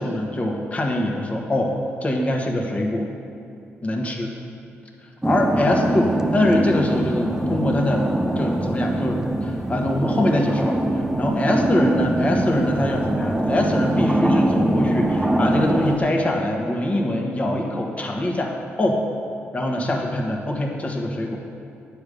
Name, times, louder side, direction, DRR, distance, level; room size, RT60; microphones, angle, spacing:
voice 1, 0.0-1.7 2.0-3.1 3.8-4.3 5.2-8.1 8.4-19.0 19.5-21.4, left 1 dB, 30° left, 1 dB, 1.2 m, -23 dB
sound 1, 5.2-16.0, right 1 dB, 10° right, 0.6 m, -23 dB
9.2 x 5.0 x 6.7 m, 2.6 s
cardioid pair, 85°, 5 cm